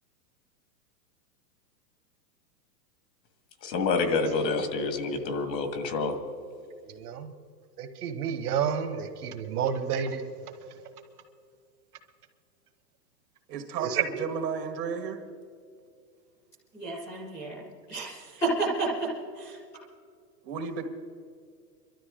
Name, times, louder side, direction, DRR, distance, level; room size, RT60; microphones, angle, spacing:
voice 1, 3.6-6.2, left 4 dB, 90° left, 7 dB, 2.0 m, -28 dB
voice 2, 6.8-7.3 7.8-10.2 13.8-14.0, right 8 dB, 65° right, 8 dB, 1.4 m, -30 dB
voice 3, 13.5-15.2 20.4-20.8, right 6 dB, 85° right, 5 dB, 2.1 m, -33 dB
voice 4, 16.7-17.6 17.9-19.6, right 2 dB, 5° left, -6 dB, 0.5 m, -31 dB
26.5 x 12.5 x 3.8 m, 2.2 s
supercardioid pair, 180°, 49 cm